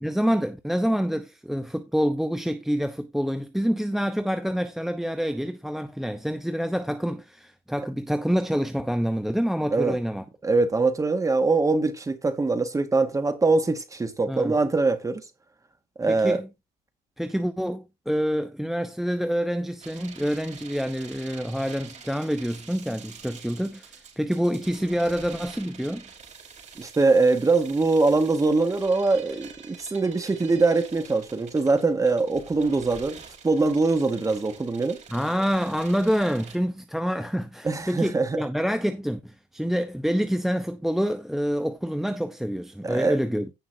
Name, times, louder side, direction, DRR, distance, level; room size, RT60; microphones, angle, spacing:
voice 1, 0.0-10.2 14.3-14.6 16.1-16.5 17.2-26.0 35.1-43.5, equal, ahead, 0.8 m, -27 dB
voice 2, 10.4-15.2 16.0-16.4 26.8-35.0 37.6-38.4 42.8-43.2, right 3 dB, 20° right, 1.8 m, -23 dB
sound 1, 19.8-36.6, right 6 dB, 45° right, 4.7 m, -46 dB
16.5 x 5.6 x 2.7 m
cardioid pair, 110°, 17 cm